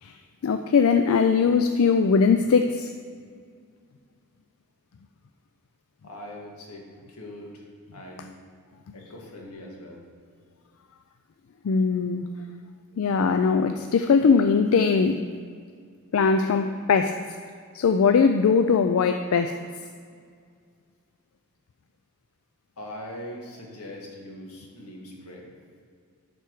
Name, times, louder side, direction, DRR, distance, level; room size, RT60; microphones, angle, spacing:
voice 1, 0.4-2.9 11.6-12.3 13.0-15.2 16.1-17.2 17.7-19.6, left 5 dB, 70° left, 7 dB, 0.3 m, -20 dB
voice 2, 6.0-7.6 7.9-8.3 8.9-10.0 22.8-25.4, left 1 dB, 85° left, -1 dB, 1.8 m, -41 dB
11.5 x 4.6 x 4.6 m, 2.1 s
head